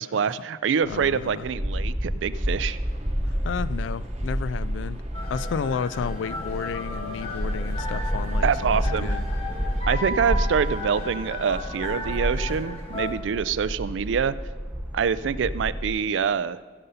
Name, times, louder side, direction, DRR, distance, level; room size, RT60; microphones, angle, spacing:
voice 1, 0.0-2.8 8.4-9.2 9.9-14.3 14.9-16.6, right 6 dB, 80° right, 16 dB, 0.4 m, -25 dB
sound 1, 0.8-15.9, equal, 5° right, 0.6 m, -30 dB
voice 2, 0.9-1.5 3.4-5.0 5.3-9.2, left 6 dB, 80° left, 18 dB, 0.3 m, -32 dB
sound 2, 2.3-9.8, right 2 dB, 35° right, 0.9 m, -47 dB
sound 3, 5.1-13.1, left 1 dB, 35° left, 1.8 m, -35 dB
16.0 x 5.4 x 5.6 m, 1.5 s
head